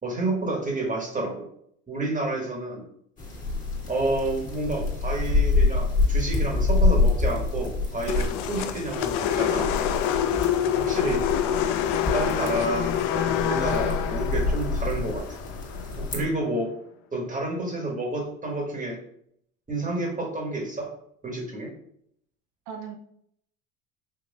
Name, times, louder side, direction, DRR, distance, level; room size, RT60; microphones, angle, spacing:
voice 1, 0.0-1.4 1.9-2.8 3.9-9.7 10.6-11.3 12.1-15.2 16.0-16.7 17.1-19.0 19.7-20.9 21.2-21.7, right 2 dB, 20° right, -1 dB, 1.7 m, -29 dB
sound 1, 3.2-16.2, left 3 dB, 20° left, 1.7 m, -27 dB
sound 2, 8.1-16.3, left 9 dB, 75° left, 0.5 m, -27 dB
voice 2, 22.7-23.0, right 6 dB, 60° right, 3 dB, 0.7 m, -38 dB
5.5 x 3.1 x 2.5 m, 0.69 s
hypercardioid pair, 80°, 36 cm